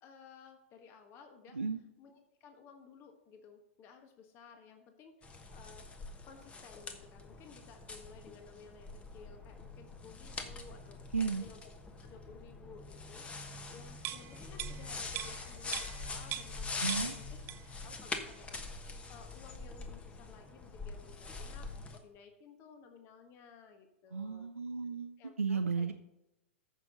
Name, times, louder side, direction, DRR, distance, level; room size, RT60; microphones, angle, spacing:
voice 1, 0.0-1.6 2.0-5.9 6.2-11.0 11.4-11.6 12.0-17.4 17.8-18.5 19.1-24.5 25.2-25.9, left 5 dB, 35° left, 5 dB, 1.4 m, -56 dB
sound 1, 5.2-22.0, left 3 dB, 15° left, 1.2 m, -44 dB
voice 2, 11.1-11.5 16.8-17.1 24.1-25.9, right 5 dB, 85° right, 6 dB, 0.6 m, -34 dB
sound 2, 14.0-16.6 16.9-17.8 18.2-18.3, right 12 dB, 30° right, 0.6 m, -42 dB
14.5 x 6.1 x 4.0 m, 0.93 s
figure-of-eight pair, 105°, 7 cm